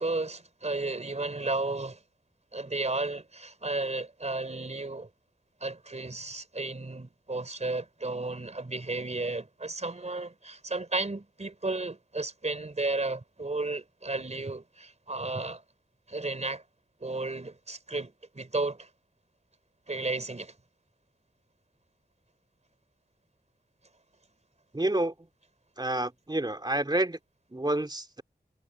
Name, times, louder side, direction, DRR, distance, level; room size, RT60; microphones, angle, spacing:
voice 1, 0.0-2.0 2.5-5.1 5.6-15.6 16.1-16.6 17.0-18.9 19.9-20.5, right 2 dB, 40° right, 3.7 m, -33 dB
voice 2, 24.7-25.1 25.8-27.2 27.5-28.2, right 1 dB, 25° right, 3.3 m, -28 dB
wide cardioid pair, 75°, 17 cm